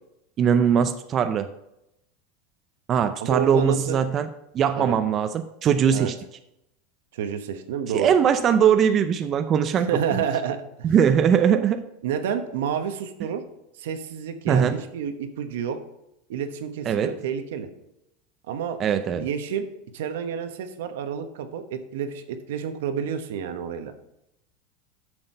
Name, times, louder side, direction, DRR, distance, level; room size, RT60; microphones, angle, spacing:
voice 1, 0.4-1.5 2.9-4.3 4.5-6.2 7.9-10.2 10.8-11.8 14.5-14.8 16.9-17.2 18.8-19.3, right 8 dB, 35° right, 9 dB, 0.5 m, -21 dB
voice 2, 3.2-4.0 4.8-4.9 5.9-6.1 7.1-8.1 9.9-10.9 12.0-13.4 13.8-15.8 16.3-17.7 18.5-18.8 19.2-19.7 19.9-23.9, right 8 dB, 80° right, 8 dB, 1.0 m, -29 dB
7.7 x 6.1 x 5.4 m, 0.85 s
supercardioid pair, 125°, 0 cm